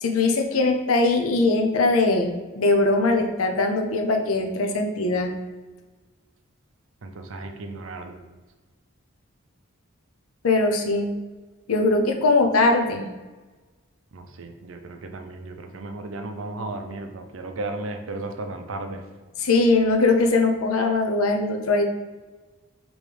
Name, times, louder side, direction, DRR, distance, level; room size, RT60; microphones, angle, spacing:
voice 1, 0.0-5.3 10.4-11.1 11.7-13.1 19.4-21.8, left 3 dB, 85° left, 4 dB, 0.6 m, -21 dB
voice 2, 7.0-8.1 14.1-19.0, right 2 dB, 65° right, 5 dB, 0.6 m, -35 dB
5.2 x 3.1 x 3.3 m, 1.3 s
head